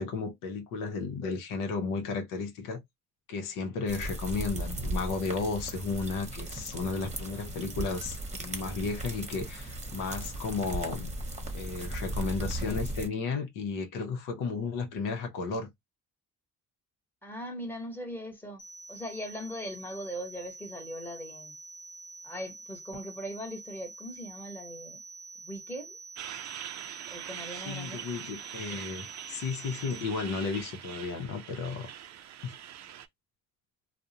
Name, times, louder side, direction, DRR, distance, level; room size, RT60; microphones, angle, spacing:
voice 1, 0.0-2.8 3.3-11.1 11.5-15.7 27.6-31.9 32.4-32.5, left 4 dB, 85° left, 0.7 m, -33 dB
sound 1, 3.9-13.1, right 1 dB, 20° right, 0.9 m, -37 dB
voice 2, 17.2-18.6 18.9-21.5 22.2-25.0 25.4-26.0 27.1-28.1, equal, 5° left, 1.0 m, -40 dB
sound 2, 18.6-30.0, right 3 dB, 40° left, 0.5 m, -47 dB
Truck, 26.2-33.1, right 11 dB, 60° right, 0.4 m, -43 dB
2.4 x 2.0 x 2.7 m
cardioid pair, 90°, 31 cm